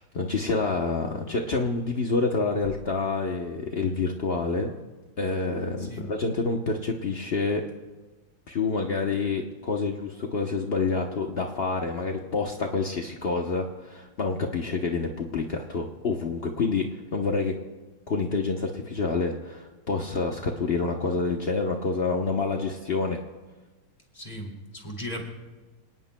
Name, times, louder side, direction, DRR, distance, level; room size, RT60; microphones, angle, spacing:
voice 1, 0.0-4.8 5.2-7.6 8.5-17.5 18.1-23.2, left 4 dB, 55° left, 2 dB, 0.6 m, -28 dB
voice 2, 5.8-6.1 24.1-25.2, equal, 20° left, 0 dB, 2.5 m, -37 dB
26.5 x 18.5 x 2.2 m, 1.2 s
omnidirectional pair, 2.4 m